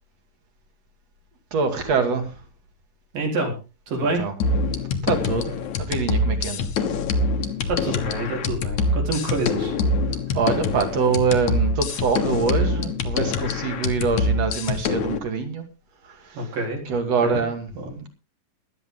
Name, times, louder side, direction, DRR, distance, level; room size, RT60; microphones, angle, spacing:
voice 1, 1.5-2.4 4.0-4.3 5.0-6.7 10.3-15.7 16.0-16.6 16.8-17.7 18.0-18.1, right 5 dB, 50° right, 6 dB, 3.3 m, -25 dB
voice 2, 3.1-3.5 3.9-4.2 7.7-9.7 16.3-16.8 17.2-17.4 17.8-18.0, right 2 dB, 75° right, 1 dB, 5.7 m, -27 dB
sound 1, 4.4-15.2, left 3 dB, 60° left, 2.6 m, -25 dB
16.5 x 12.5 x 3.8 m, 0.32 s
omnidirectional pair, 4.0 m